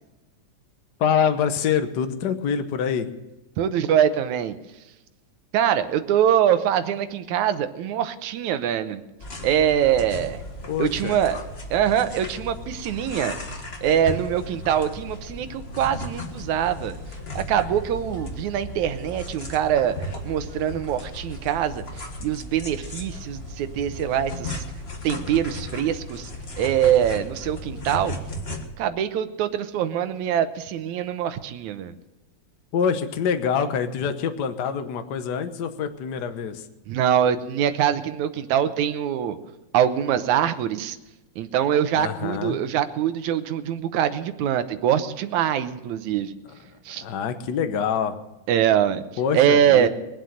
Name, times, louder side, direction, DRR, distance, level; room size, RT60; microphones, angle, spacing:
voice 1, 1.0-3.1 10.7-11.2 32.7-36.6 41.9-42.6 46.5-46.6 47.0-48.2 49.2-49.9, left 7 dB, 85° left, 8 dB, 0.9 m, -25 dB
voice 2, 3.6-4.6 5.5-9.0 9.4-10.4 10.8-11.4 11.7-13.4 13.8-17.0 17.4-24.6 25.0-26.3 26.6-28.2 28.8-32.0 36.9-39.4 39.7-41.0 41.4-46.4 46.9-47.0 48.5-49.1 49.3-49.9, right 9 dB, 85° right, 10 dB, 2.3 m, -23 dB
sound 1, 9.2-28.6, left 1 dB, 30° left, 1.1 m, -36 dB
22.5 x 8.2 x 6.5 m, 1.0 s
omnidirectional pair, 3.3 m